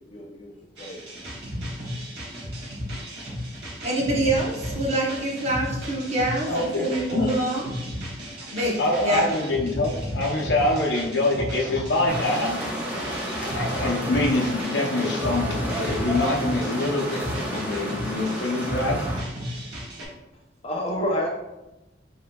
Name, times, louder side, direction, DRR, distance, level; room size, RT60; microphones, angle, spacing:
voice 1, 0.1-0.5 0.8-1.0 20.6-21.3, equal, 35° left, 0 dB, 0.6 m, -28 dB
sound 1, 0.8-20.0, equal, 65° right, 1.5 m, -34 dB
voice 2, 3.8-7.7 8.5-9.3, right 2 dB, 35° right, -3 dB, 0.9 m, -26 dB
voice 3, 6.5-6.9 7.1-7.3 8.8-12.7 13.4-19.0, left 2 dB, 75° left, -1 dB, 0.6 m, -25 dB
sound 2, 12.1-19.2, equal, 10° right, 0.8 m, -31 dB
5.5 x 3.6 x 2.3 m, 0.95 s
head